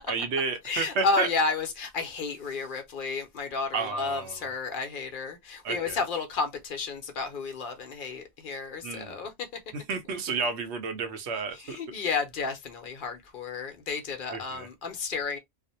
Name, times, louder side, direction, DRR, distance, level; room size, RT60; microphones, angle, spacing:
voice 1, 0.1-1.3 3.7-4.4 5.6-6.0 8.8-9.2 9.7-11.8 14.3-14.7, right 5 dB, 85° right, 0.9 m, -31 dB
voice 2, 0.6-9.3 11.5-15.4, left 4 dB, 60° left, 0.7 m, -32 dB
2.5 x 2.0 x 2.6 m
omnidirectional pair, 1.1 m